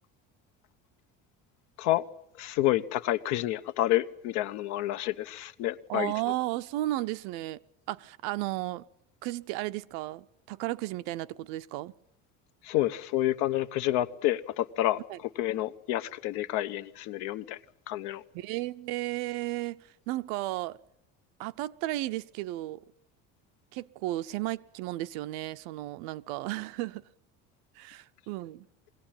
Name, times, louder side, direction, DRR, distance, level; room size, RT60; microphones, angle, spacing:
voice 1, 2.4-6.1 12.6-15.0 15.4-17.6 17.9-18.2, left 14 dB, 65° left, 0.9 m, -29 dB
voice 2, 5.9-7.6 7.9-8.8 9.2-11.9 15.1-15.2 18.3-19.8 20.1-20.8 21.4-22.8 23.7-27.0 27.8-28.7, right 17 dB, 80° right, 0.7 m, -34 dB
22.5 x 17.0 x 9.0 m
cardioid pair, 170°, 31 cm